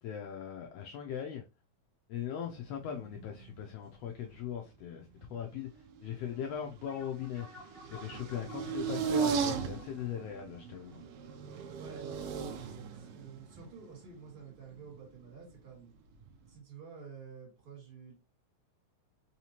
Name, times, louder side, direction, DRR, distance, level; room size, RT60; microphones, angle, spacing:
voice 1, 0.0-1.4 2.1-7.5 7.9-11.0, left 9 dB, 90° left, 1.4 m, -39 dB
sound 1, 2.6-3.6 3.9-4.9 5.2-15.5 16.1-16.6, right 6 dB, 85° right, 1.3 m, -38 dB
sound 2, 6.8-11.7, left 1 dB, 20° left, 0.8 m, -55 dB
voice 2, 11.7-15.9 16.4-18.1, right 6 dB, 45° right, 2.7 m, -50 dB
4.8 x 2.8 x 2.8 m
omnidirectional pair, 3.4 m